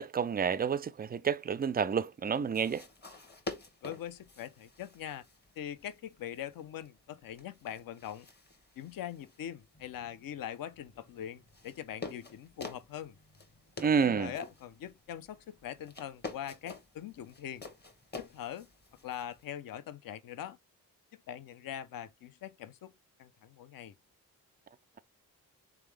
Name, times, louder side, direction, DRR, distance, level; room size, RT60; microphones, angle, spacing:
voice 1, 0.0-2.8 13.8-14.3, right 6 dB, 25° right, 0.3 m, -29 dB
sound 1, 2.5-19.5, left 3 dB, 25° left, 1.1 m, -49 dB
voice 2, 3.8-5.3 5.6-8.3 8.8-13.2 14.0-17.7 18.2-18.7 19.0-20.6 21.1-22.9 23.2-24.0, left 10 dB, 50° left, 0.6 m, -42 dB
3.5 x 3.3 x 3.3 m
supercardioid pair, 45°, 43 cm